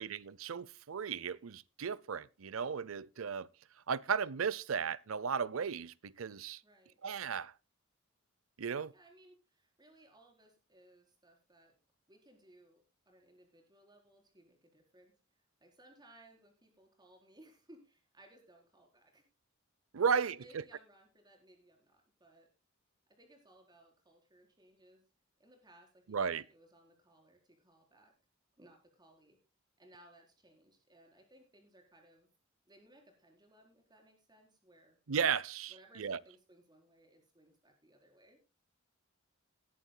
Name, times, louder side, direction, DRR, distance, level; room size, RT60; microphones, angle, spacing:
voice 1, 0.0-3.5 3.9-6.6 7.0-7.5 8.6-8.9 19.9-20.4 26.1-26.4 35.1-36.2, right 6 dB, 85° right, 0.6 m, -35 dB
voice 2, 6.6-7.0 8.9-11.8 12.1-15.2 15.6-19.3 20.0-22.5 23.1-25.1 25.4-28.1 28.6-29.4 29.8-32.3 32.7-35.0 35.7-38.4, right 1 dB, 20° right, 4.3 m, -63 dB
19.5 x 11.5 x 2.2 m
head